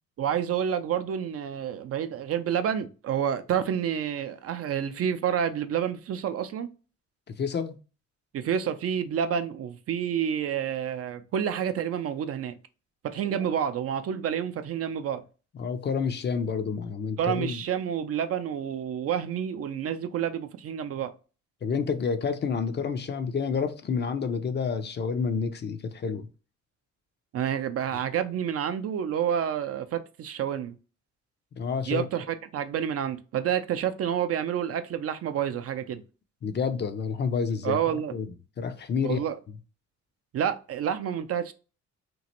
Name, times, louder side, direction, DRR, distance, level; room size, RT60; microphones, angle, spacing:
voice 1, 0.2-6.7 8.3-12.6 13.0-15.2 17.2-21.1 27.3-30.8 31.9-36.0 37.6-38.1 39.0-39.4 40.3-41.5, right 9 dB, 50° right, 0.4 m, -29 dB
voice 2, 7.4-7.7 13.2-13.5 15.6-17.6 21.6-26.3 31.6-32.1 36.4-38.3 38.6-39.2, left 5 dB, 35° left, 0.5 m, -29 dB
3.0 x 2.5 x 2.8 m
cardioid pair, 90°, 30 cm